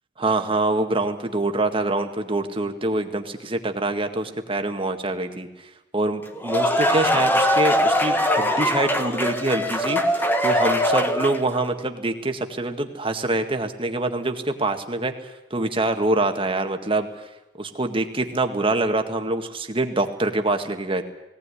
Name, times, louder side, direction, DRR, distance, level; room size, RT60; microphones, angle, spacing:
voice 1, 0.2-17.2 17.6-21.0, right 2 dB, 30° right, 6 dB, 1.8 m, -25 dB
sound 1, 6.2-11.6, equal, 10° left, 1.6 m, -21 dB
19.0 x 18.0 x 9.9 m, 0.94 s
head